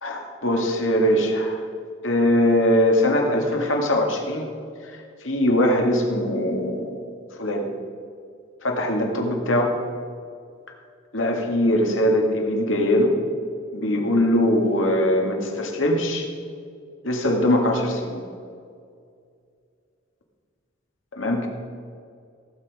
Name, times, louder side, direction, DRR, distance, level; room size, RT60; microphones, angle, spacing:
voice 1, 0.0-1.6 2.0-4.5 5.2-7.0 7.4-7.6 8.6-9.8 11.1-13.1 13.7-16.3 17.0-18.2 21.2-21.5, left 1 dB, 85° left, 1 dB, 1.9 m, -21 dB
16.5 x 8.4 x 4.8 m, 2.3 s
head